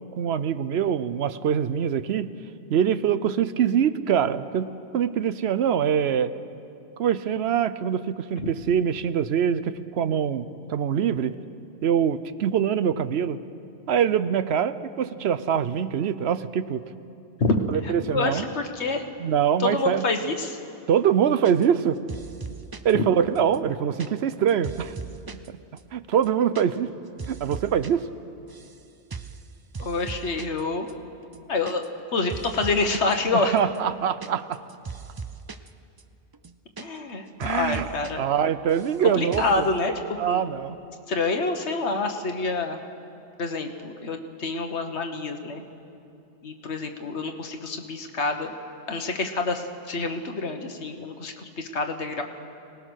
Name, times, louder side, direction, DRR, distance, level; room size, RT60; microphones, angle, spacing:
voice 1, 0.2-2.3 2.7-6.3 7.0-11.3 11.8-13.4 13.9-16.8 17.7-18.4 19.2-20.0 20.9-22.0 22.8-24.9 25.3-25.6 25.9-26.9 27.3-28.0 33.3-34.6 37.4-37.8 38.2-39.7 40.2-40.8, right 8 dB, 70° right, 13 dB, 0.9 m, -24 dB
voice 2, 17.4-19.0 19.6-20.6 22.9-23.1 29.8-30.9 31.5-31.8 32.1-33.5 36.8-38.3 39.1-40.4 41.1-42.8 43.4-45.6 46.4-48.6 48.9-52.2, left 3 dB, 80° left, 5 dB, 1.6 m, -27 dB
sound 1, 21.4-21.8 22.1-22.9 23.4-25.5 25.8-25.9 26.1-26.6 26.9-27.9 28.2-28.8 29.1-29.4 29.7-30.6 30.9-31.0 31.2-32.0 32.3-33.1 33.6-35.7 36.0-36.1 36.3-37.1 37.4-38.1 38.4-39.0 39.3-39.6, right 5 dB, 30° right, 0.4 m, -38 dB
25.5 x 18.5 x 6.4 m, 2.6 s
omnidirectional pair, 1.1 m